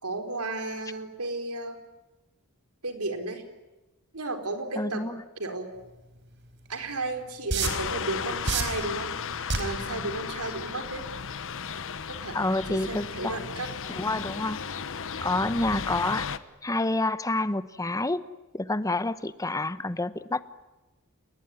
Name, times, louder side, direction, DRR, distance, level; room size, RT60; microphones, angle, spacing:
voice 1, 0.0-1.8 2.8-3.4 4.1-5.0 5.4-5.7 6.7-11.1 12.1-13.7, right 2 dB, 75° right, 5 dB, 4.4 m, -34 dB
voice 2, 4.8-5.2 9.9-10.1 12.3-13.5 13.9-14.6 15.2-16.3 16.6-18.2 18.5-20.4, left 2 dB, 15° left, 14 dB, 0.9 m, -28 dB
sound 1, 6.7-6.8 7.5-7.9 8.5-8.8 9.5-9.8 10.5-10.7, right 4 dB, 55° right, 4.5 m, -26 dB
sound 2, 7.6-16.4, left 6 dB, 65° left, 1.2 m, -35 dB
30.0 x 20.5 x 9.8 m, 1.1 s
head